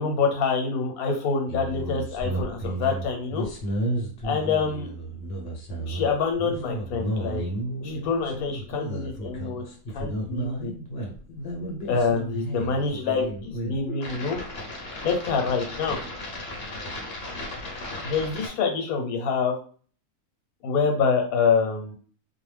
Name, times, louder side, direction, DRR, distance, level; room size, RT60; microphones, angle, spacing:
voice 1, 0.0-3.5 4.2-4.9 5.8-7.4 7.8-9.6 9.9-10.7 11.8-14.4 15.0-16.0 18.0-19.6 20.6-21.9, left 5 dB, 75° left, 3 dB, 1.2 m, -26 dB
sound 1, 1.5-18.5, right 1 dB, 50° left, 0.9 m, -33 dB
2.5 x 2.2 x 3.2 m, 0.43 s
omnidirectional pair, 1.6 m